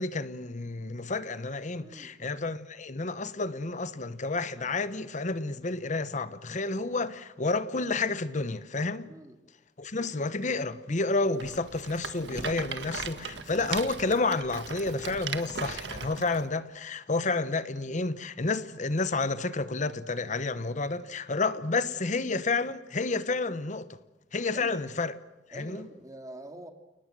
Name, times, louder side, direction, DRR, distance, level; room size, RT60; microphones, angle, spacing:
voice 1, 0.0-9.1 9.8-24.0 24.3-25.2 25.5-25.9, left 3 dB, 45° left, 1.0 m, -30 dB
voice 2, 1.8-2.2 9.0-9.4 13.5-13.7 24.5-24.8 25.5-26.7, right 1 dB, 20° right, 2.4 m, -46 dB
Rattle, 11.4-16.5, right 5 dB, 75° right, 1.7 m, -38 dB
30.0 x 19.0 x 7.6 m
head